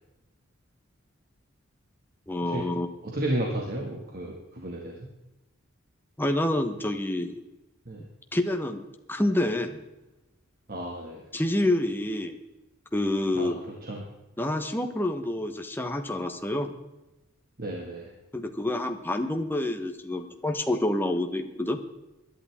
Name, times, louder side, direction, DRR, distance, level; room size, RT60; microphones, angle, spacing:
voice 1, 2.3-2.9 6.2-7.4 8.3-9.8 11.3-12.3 12.9-13.6 14.4-16.7 18.3-21.8, left 1 dB, 10° left, 5 dB, 1.2 m, -28 dB
voice 2, 3.0-5.1 7.9-8.0 10.7-11.2 13.4-13.5 13.8-14.0 17.6-18.1, right 1 dB, 45° right, -1 dB, 2.1 m, -32 dB
21.5 x 11.0 x 3.7 m, 1.0 s
head